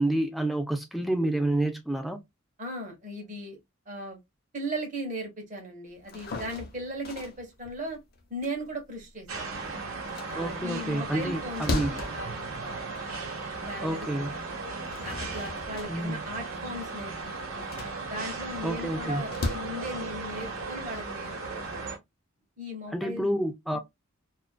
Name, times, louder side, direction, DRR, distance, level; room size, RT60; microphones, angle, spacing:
voice 1, 0.0-2.2 10.3-12.0 13.8-14.3 15.9-16.2 18.6-19.2 22.9-23.8, right 1 dB, ahead, 0.3 m, -29 dB
voice 2, 2.6-3.6 3.9-4.2 4.5-8.0 8.3-9.7 10.3-12.3 12.6-12.8 13.6-14.5 15.0-17.7 18.1-21.3 21.7-21.8 22.6-23.2 23.7-23.8, equal, 35° right, 0.9 m, -37 dB
sound 1, 6.0-9.5 9.9-13.4 13.9-14.0 14.6-19.6, left 2 dB, 45° left, 0.6 m, -37 dB
sound 2, 9.3-22.0, right 3 dB, 80° right, 0.9 m, -36 dB
2.4 x 2.2 x 2.2 m
head